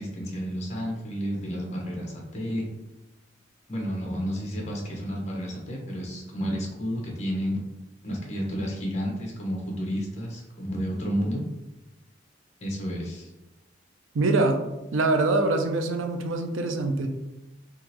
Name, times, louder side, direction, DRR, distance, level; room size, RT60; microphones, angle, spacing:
voice 1, 0.0-2.7 3.7-7.6 8.0-11.4 12.6-13.3, equal, 35° left, -1 dB, 1.0 m, -31 dB
voice 2, 14.1-14.6 14.9-17.1, right 2 dB, 85° right, 5 dB, 0.5 m, -24 dB
3.7 x 3.1 x 3.0 m, 0.98 s
head